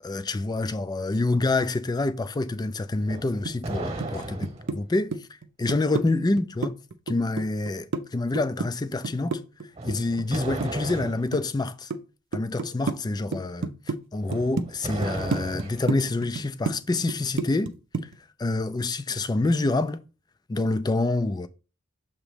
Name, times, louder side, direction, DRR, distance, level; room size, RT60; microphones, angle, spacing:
voice 1, 0.0-5.3 5.6-6.7 7.1-9.4 9.8-11.9 12.3-17.7 18.4-20.0 20.5-21.5, left 2 dB, 20° left, 0.4 m, -27 dB
sound 1, 3.0-4.8 9.7-11.3 14.2-15.9, right 2 dB, 30° right, 1.2 m, -35 dB
sound 2, 3.5-4.1 4.4-6.1 6.4-8.0 8.4-11.1 11.3-12.0 12.3-13.0 13.3-14.0 14.3-14.6 15.0-17.7 17.9-18.2, right 3 dB, 60° right, 0.6 m, -29 dB
7.0 x 3.0 x 5.0 m
head